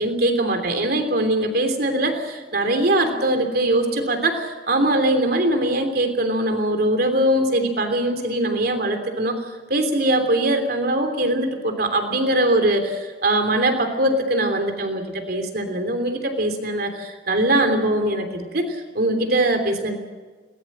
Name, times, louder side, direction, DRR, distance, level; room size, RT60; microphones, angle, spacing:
voice 1, 0.0-9.4 9.7-20.0, right 1 dB, 60° right, 6 dB, 3.2 m, -21 dB
22.0 x 19.5 x 7.5 m, 1.4 s
head